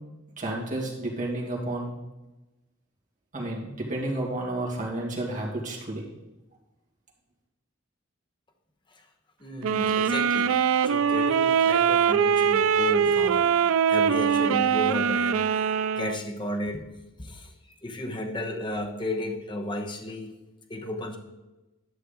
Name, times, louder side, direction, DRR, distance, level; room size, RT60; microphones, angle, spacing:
voice 1, 0.4-2.0 3.3-6.1, right 1 dB, 40° right, -2 dB, 2.3 m, -31 dB
voice 2, 9.4-10.5 10.8-15.7 16.0-16.8 17.2-17.5 17.8-20.3 20.7-21.2, left 1 dB, 25° left, 4 dB, 0.9 m, -33 dB
sound 1, 9.6-16.2, right 7 dB, 80° right, 0.3 m, -22 dB
11.0 x 6.3 x 3.8 m, 1.1 s
head